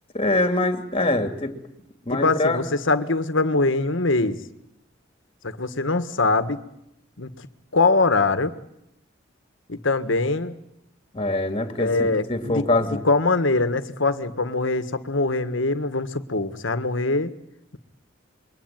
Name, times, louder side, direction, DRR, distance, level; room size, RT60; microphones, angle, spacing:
voice 1, 0.1-1.6 2.1-2.6 11.1-11.9 12.3-13.0, left 2 dB, 30° left, 7 dB, 2.6 m, -23 dB
voice 2, 2.1-4.4 5.4-6.6 7.2-7.3 7.7-8.5 9.7-10.6 11.8-17.3, left 3 dB, 70° left, 11 dB, 1.7 m, -23 dB
27.5 x 23.0 x 9.2 m, 0.79 s
head